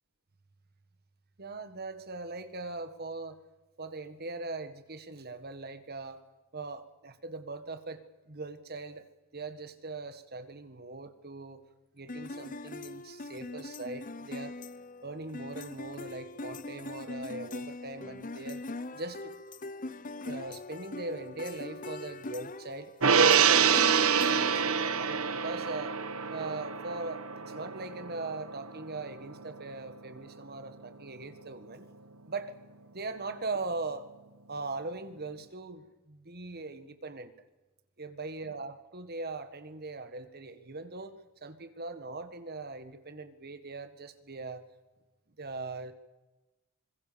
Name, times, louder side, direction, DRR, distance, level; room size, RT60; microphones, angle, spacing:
voice 1, 1.4-3.4 3.8-6.2 6.5-9.1 9.3-11.6 11.9-14.6 15.0-18.7 18.9-19.4 20.2-22.9 23.2-23.9 24.3-25.9 26.3-31.9 32.2-32.6 32.9-34.1 34.5-37.3 38.0-44.6 45.4-45.9, right 3 dB, 45° right, 10 dB, 1.7 m, -40 dB
sound 1, 12.1-25.3, left 2 dB, 40° left, 0.8 m, -42 dB
Gong, 23.0-29.6 30.0-30.1, right 6 dB, 75° right, 1.2 m, -27 dB
25.5 x 21.5 x 7.0 m, 1.1 s
head